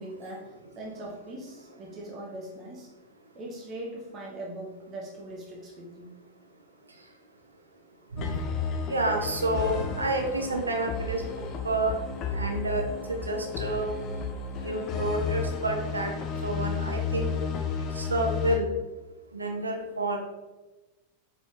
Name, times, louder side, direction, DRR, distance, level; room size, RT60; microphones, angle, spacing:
voice 1, 0.0-2.9 3.3-6.1, right 1 dB, 30° right, -2 dB, 0.7 m, -40 dB
sound 1, 8.2-18.6, left 5 dB, 35° left, 0.4 m, -33 dB
voice 2, 8.9-11.2 11.6-11.9 12.4-12.8 13.3-13.9 14.6-16.1 16.4-17.3 18.0-18.7 19.3-20.2, right 1 dB, 80° right, 2 dB, 0.5 m, -29 dB
4.0 x 3.4 x 2.4 m, 1.1 s
figure-of-eight pair, 90°, 0 cm